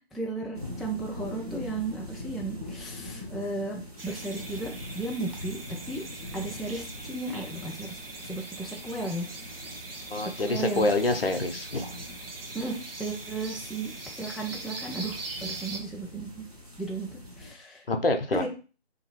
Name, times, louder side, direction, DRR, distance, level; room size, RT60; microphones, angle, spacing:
voice 1, 0.1-5.6 5.9-6.0 6.3-8.0 8.3-9.3 10.4-10.9 12.5-12.7 13.0-13.9 14.2-16.4 16.8-17.1 17.4-17.8 18.3-18.5, right 2 dB, ahead, -2 dB, 0.3 m, -34 dB
sound 1, 0.5-17.5, left 1 dB, 35° right, 0.9 m, -43 dB
sound 2, 4.0-15.8, right 3 dB, 60° right, 0.7 m, -41 dB
voice 2, 10.1-11.8 17.9-18.4, left 2 dB, 60° left, 6 dB, 0.6 m, -26 dB
2.7 x 2.3 x 4.1 m, 0.35 s
figure-of-eight pair, 165°, 32 cm